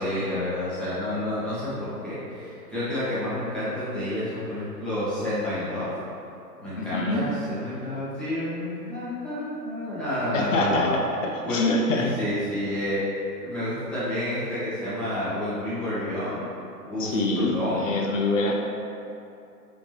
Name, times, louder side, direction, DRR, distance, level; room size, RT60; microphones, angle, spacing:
voice 1, 0.0-5.9 6.6-11.0 11.4-11.6 11.9-13.0 13.4-16.5 16.8-17.9, left 1 dB, ahead, -13 dB, 1.0 m, -29 dB
voice 2, 6.7-7.2 10.3-11.0 11.3-12.2 17.0-18.6, left 2 dB, 55° left, 1 dB, 0.7 m, -25 dB
4.1 x 3.0 x 3.1 m, 2.6 s
figure-of-eight pair, 125°, 48 cm